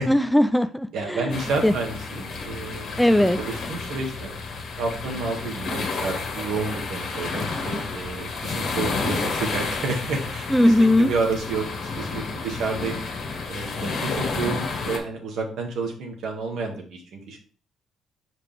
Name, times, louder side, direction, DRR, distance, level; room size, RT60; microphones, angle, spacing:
voice 1, 0.1-1.7 3.0-3.4 10.5-11.1, left 1 dB, 5° left, 13 dB, 0.3 m, -19 dB
voice 2, 0.9-3.0 3.4-4.3 4.8-13.0 13.5-17.4, right 4 dB, 75° right, 2 dB, 1.7 m, -30 dB
sound 1, 1.3-15.0, left 4 dB, 70° left, 1.6 m, -31 dB
5.7 x 5.0 x 3.3 m, 0.41 s
cardioid pair, 90°, 0 cm